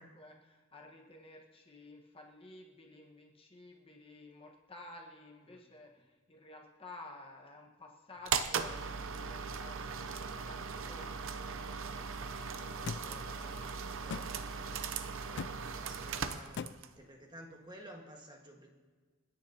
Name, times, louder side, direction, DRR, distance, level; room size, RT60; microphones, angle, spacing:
voice 1, 0.0-14.4, left 2 dB, 25° left, 0 dB, 1.4 m, -54 dB
sound 1, 8.3-17.0, right 6 dB, 65° right, 0.7 m, -38 dB
sound 2, 12.9-13.0 14.1-14.3 15.4-15.5 16.6-16.7, left 6 dB, 55° left, 0.4 m, -38 dB
voice 2, 15.8-18.7, right 1 dB, 20° right, 1 dB, 1.6 m, -52 dB
30.0 x 10.0 x 2.9 m, 1.4 s
head